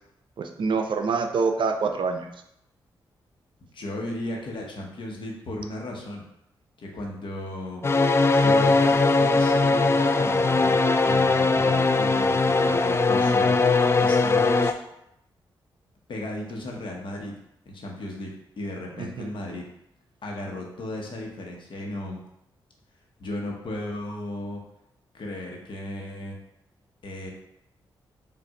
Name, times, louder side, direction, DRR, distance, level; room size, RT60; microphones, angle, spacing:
voice 1, 0.4-2.3 19.0-19.3, right 4 dB, 60° right, 5 dB, 0.5 m, -26 dB
voice 2, 3.6-6.2 6.8-7.8 8.3-10.8 11.0-14.7 16.1-17.3 17.6-18.3 18.6-19.6 20.2-22.2 23.2-24.6 25.1-26.4 27.0-27.3, left 1 dB, 65° left, 0 dB, 1.1 m, -35 dB
sound 1, 7.8-14.7, left 3 dB, 30° left, 0.3 m, -20 dB
5.0 x 2.5 x 3.7 m, 0.80 s
cardioid pair, 55°, 9 cm